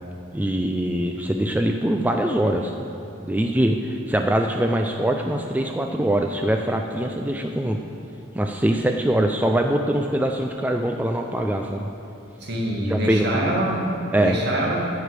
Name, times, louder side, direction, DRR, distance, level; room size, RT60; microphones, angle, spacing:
voice 1, 0.3-2.7 3.2-7.8 8.3-11.9 12.9-13.5 14.1-14.4, right 1 dB, 10° right, 3 dB, 0.4 m, -23 dB
voice 2, 12.4-13.9 14.2-14.9, right 1 dB, 55° right, -2 dB, 1.9 m, -24 dB
12.0 x 5.1 x 8.2 m, 2.7 s
head